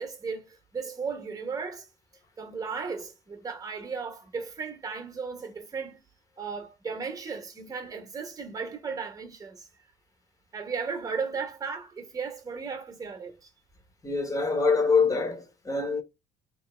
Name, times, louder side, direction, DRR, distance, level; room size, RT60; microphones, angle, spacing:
voice 1, 0.0-1.9 2.4-6.0 6.4-9.7 10.5-13.5, right 5 dB, 20° right, 1.0 m, -35 dB
voice 2, 14.0-16.0, left 4 dB, 20° left, 0.9 m, -25 dB
3.0 x 2.9 x 4.2 m
cardioid pair, 140°, 18 cm